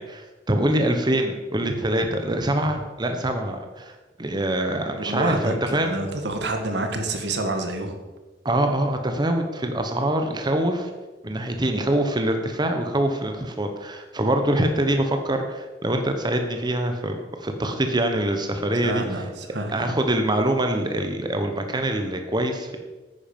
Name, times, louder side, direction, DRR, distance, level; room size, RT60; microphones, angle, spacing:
voice 1, 0.0-6.0 8.4-10.9 11.2-19.0 19.7-22.8, right 1 dB, 25° right, 5 dB, 1.0 m, -24 dB
voice 2, 5.0-7.9 18.8-19.9, right 2 dB, 75° right, 5 dB, 1.7 m, -28 dB
10.5 x 9.6 x 5.4 m, 1.2 s
head